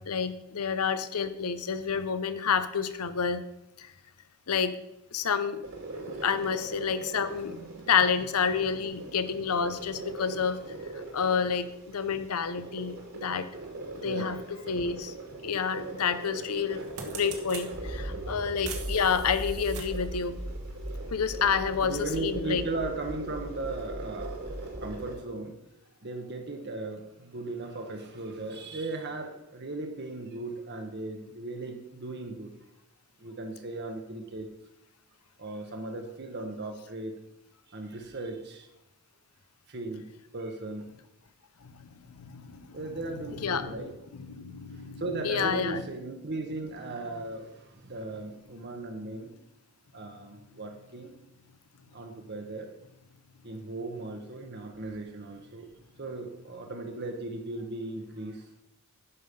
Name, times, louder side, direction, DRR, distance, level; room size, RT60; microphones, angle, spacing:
voice 1, 0.0-3.4 3.8-3.9 4.5-4.7 5.1-5.6 6.1-7.6 7.9-10.6 11.1-13.5 14.0-14.4 14.7-15.1 15.4-20.3 21.1-22.6 41.6-41.9 42.2-42.8 43.3-43.7 44.3-45.8, left 6 dB, 85° left, 13 dB, 0.7 m, -29 dB
sound 1, 5.6-25.1, right 2 dB, 65° right, 2.4 m, -42 dB
voice 2, 7.5-7.9 14.0-14.7 16.7-16.9 18.1-18.3 21.8-24.4 24.8-25.5 26.0-32.5 33.2-34.5 35.4-37.1 37.7-38.7 39.7-40.1 40.3-40.9 42.7-43.9 45.0-49.3 49.9-51.1 51.9-52.7 53.4-55.7 56.0-58.5, right 2 dB, 50° right, 3 dB, 1.1 m, -37 dB
sound 2, 14.8-14.9 16.2-16.4 16.7-17.7 18.6-20.1, right 6 dB, 85° right, 1.6 m, -42 dB
Accelerating revving vroom, 17.7-25.0, right 1 dB, 15° right, 0.9 m, -39 dB
11.0 x 5.7 x 5.2 m, 0.87 s
head